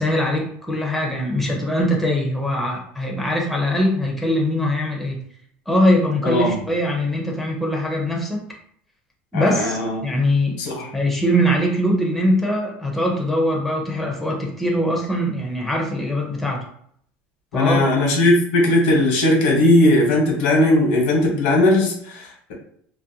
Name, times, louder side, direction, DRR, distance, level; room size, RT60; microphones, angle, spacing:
voice 1, 0.0-5.2 5.7-8.4 9.3-10.6 10.9-16.7 17.5-17.8, equal, ahead, -1 dB, 0.5 m, -22 dB
voice 2, 9.3-10.0 10.6-10.9 17.5-22.5, left 1 dB, 85° left, 0 dB, 1.0 m, -18 dB
2.5 x 2.1 x 2.7 m, 0.65 s
cardioid pair, 140°, 5 cm